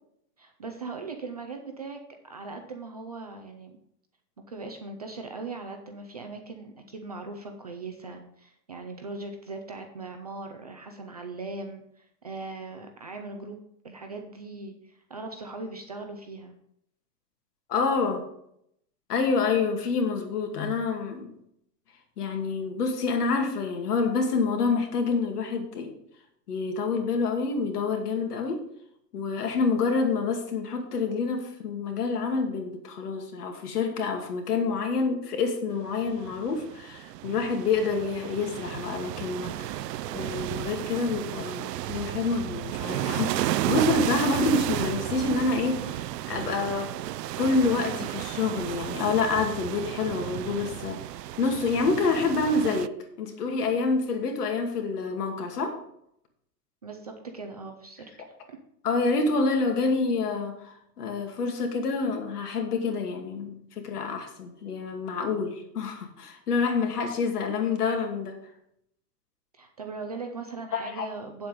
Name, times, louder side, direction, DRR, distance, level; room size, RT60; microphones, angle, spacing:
voice 1, 0.4-3.8 4.5-13.6 13.8-16.5 56.8-58.1 58.5-58.6 69.5-71.5, right 3 dB, 25° right, 4 dB, 0.4 m, -39 dB
voice 2, 17.7-18.2 19.1-21.3 22.2-25.9 26.5-28.6 29.1-39.8 40.1-46.9 47.4-51.0 51.4-55.8 58.8-68.4 70.7-71.1, left 4 dB, 70° left, 4 dB, 2.4 m, -27 dB
sound 1, 36.0-52.9, right 14 dB, 85° right, 0.6 m, -33 dB
8.4 x 7.6 x 5.1 m, 0.73 s
supercardioid pair, 175°, 47 cm